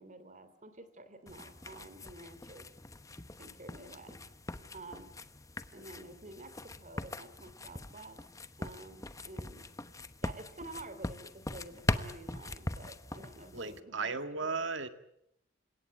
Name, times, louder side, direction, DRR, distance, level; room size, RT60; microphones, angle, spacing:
voice 1, 0.0-2.7 3.4-4.2 4.7-5.1 5.7-8.2 8.6-9.7 10.2-14.6, right 2 dB, 40° right, 12 dB, 3.2 m, -50 dB
sound 1, 1.3-13.8, left 1 dB, 15° left, 1.0 m, -41 dB
voice 2, 13.5-14.9, right 4 dB, 70° right, 9 dB, 2.0 m, -35 dB
28.5 x 17.5 x 9.5 m, 0.76 s
head